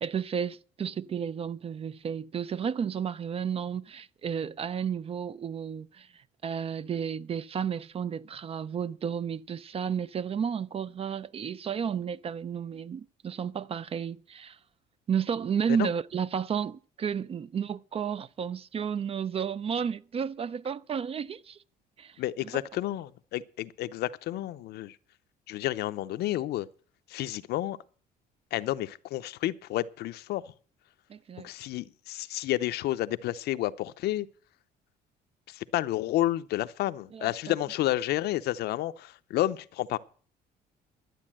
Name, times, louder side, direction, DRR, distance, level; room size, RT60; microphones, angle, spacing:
voice 1, 0.0-14.6 15.1-21.6 22.0-22.2 31.1-31.5 37.1-37.3, right 7 dB, 35° right, 0.5 m, -32 dB
voice 2, 22.2-24.9 25.5-26.7 27.1-27.8 28.5-30.4 31.4-34.3 35.5-40.0, left 14 dB, 75° left, 0.7 m, -30 dB
12.0 x 8.3 x 7.5 m
cardioid pair, 110°, 17 cm